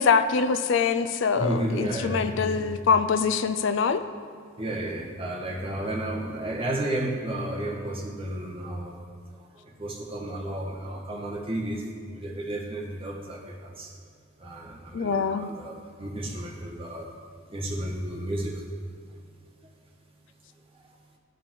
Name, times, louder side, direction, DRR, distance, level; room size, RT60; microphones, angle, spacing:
voice 1, 0.0-4.0 14.9-15.5, left 5 dB, 65° left, 10 dB, 0.4 m, -24 dB
voice 2, 1.4-2.6 4.6-9.0 9.5-11.8 12.1-13.9 14.4-17.1 17.5-18.6, right 1 dB, 30° right, -3 dB, 1.4 m, -32 dB
13.5 x 5.2 x 4.6 m, 2.3 s
head